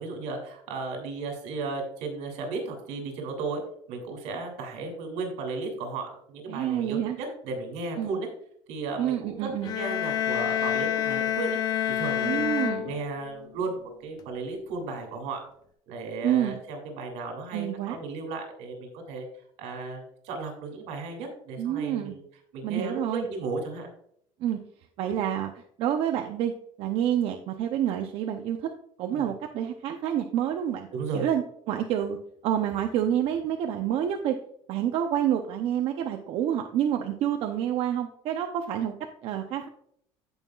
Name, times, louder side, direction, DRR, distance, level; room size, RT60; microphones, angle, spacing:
voice 1, 0.0-3.6 3.9-8.3 8.7-11.6 12.0-12.5 12.8-15.4 15.9-19.3 19.6-22.2 22.5-23.9 29.1-29.3 30.9-31.3, right 3 dB, 80° right, 3 dB, 2.9 m, -35 dB
voice 2, 6.5-7.2 8.0-8.2 9.0-9.7 12.2-12.9 16.2-16.6 17.5-18.0 21.6-22.2 22.6-23.3 24.4-24.6 25.0-26.5 26.8-28.7 29.0-30.9 31.1-32.2 32.4-34.4 34.7-38.9 39.2-39.7, right 10 dB, 55° right, 4 dB, 0.8 m, -28 dB
sound 1, 9.6-13.4, left 10 dB, 35° left, 0.8 m, -28 dB
16.0 x 5.5 x 2.5 m, 0.66 s
cardioid pair, 170°, 12 cm